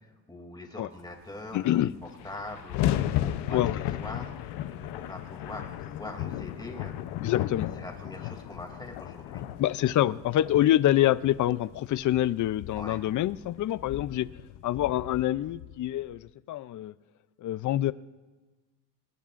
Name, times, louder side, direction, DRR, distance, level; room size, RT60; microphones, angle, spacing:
voice 1, 0.3-1.9 2.2-3.6 4.0-7.0 7.3-9.5 12.7-13.0, left 2 dB, 10° left, 2 dB, 2.7 m, -43 dB
voice 2, 1.5-1.9 3.5-3.8 7.2-7.7 9.6-14.3 14.6-16.9 17.4-17.9, left 13 dB, 50° left, 17 dB, 0.5 m, -26 dB
sound 1, 1.6-1.7 1.8-16.2, left 12 dB, 85° left, 0.8 m, -35 dB
27.0 x 19.5 x 2.5 m, 1.3 s
cardioid pair, 115°, 40 cm